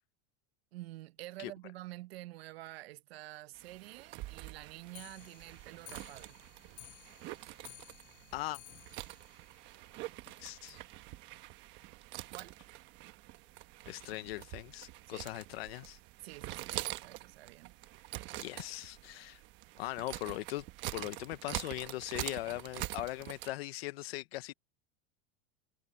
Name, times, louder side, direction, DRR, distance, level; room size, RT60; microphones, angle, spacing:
voice 1, 0.7-6.4 12.3-12.6 15.1-15.3 16.2-17.8, right 17 dB, 85° right, 1.1 m, -49 dB
sound 1, 3.5-23.5, right 18 dB, 40° right, 1.2 m, -45 dB
Clock, 4.9-10.4 10.7-10.8 11.1-11.2 11.5-11.6 11.9-12.0 12.7-12.8 13.5-13.6 14.2-14.3, left 21 dB, 40° left, 0.5 m, -56 dB
voice 2, 10.4-10.8 13.9-16.0 16.7-16.8 18.4-19.4 19.8-20.6 20.9-24.5, left 18 dB, 85° left, 0.8 m, -40 dB
supercardioid pair, 170°, 30 cm